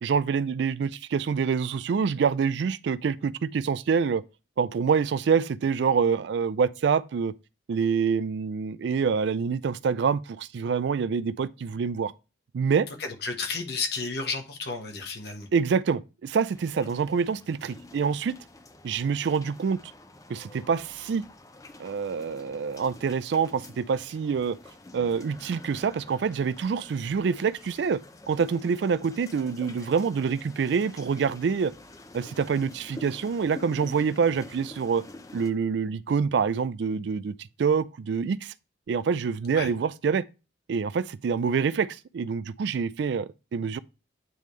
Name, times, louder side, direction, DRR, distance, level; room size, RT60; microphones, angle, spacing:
voice 1, 0.0-4.2 4.6-7.3 7.7-12.1 12.5-12.9 15.5-18.3 18.8-19.8 20.3-21.3 21.8-24.6 24.9-28.0 28.3-31.7 32.1-35.0 35.3-38.5 38.9-40.3 40.7-43.8, right 6 dB, 65° right, 0.3 m, -26 dB
voice 2, 13.2-15.5 39.5-39.7, left 4 dB, 55° left, 1.2 m, -32 dB
sound 1, 16.5-35.5, left 2 dB, 15° left, 0.5 m, -48 dB
9.3 x 3.4 x 3.1 m
head